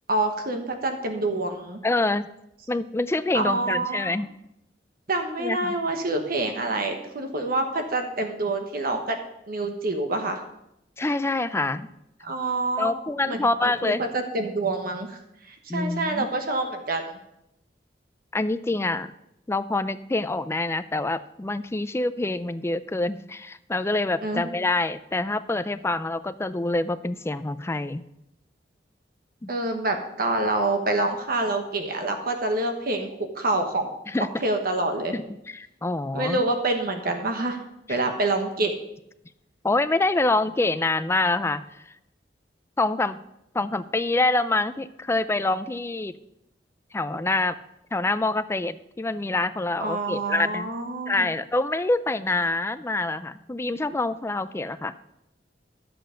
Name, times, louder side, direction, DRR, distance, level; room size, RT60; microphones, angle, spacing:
voice 1, 0.1-1.8 3.3-4.1 5.1-9.2 9.5-10.4 12.2-12.9 13.3-17.1 24.2-24.4 29.5-33.1 33.3-33.9 34.4-35.1 36.1-37.6 37.9-38.7 49.8-51.3, right 2 dB, 55° right, 5 dB, 1.2 m, -27 dB
voice 2, 1.8-2.3 2.7-4.3 5.4-5.7 11.0-11.9 12.8-14.0 15.7-16.3 18.3-19.1 19.5-28.0 29.4-29.5 34.1-34.3 35.1-36.4 37.9-38.0 39.6-41.6 42.8-43.2 43.5-46.2 46.9-47.6 47.9-50.7 51.1-54.9, left 2 dB, 15° left, 13 dB, 0.4 m, -26 dB
11.5 x 7.9 x 5.1 m, 0.83 s
head